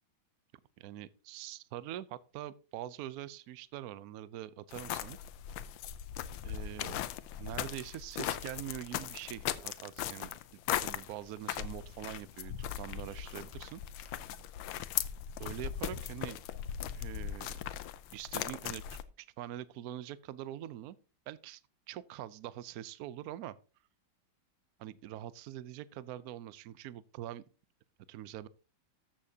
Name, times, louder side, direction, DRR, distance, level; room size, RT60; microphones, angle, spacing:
voice 1, 0.8-5.2 6.4-7.0 7.4-10.3 10.8-14.2 15.4-16.4 16.9-17.6 18.1-21.0 21.3-21.6 21.9-23.6 24.8-27.4 28.1-28.5, right 12 dB, 80° right, 0.8 m, -44 dB
sound 1, 4.7-19.0, left 11 dB, 90° left, 1.5 m, -39 dB
13.5 x 7.4 x 2.8 m
omnidirectional pair, 2.2 m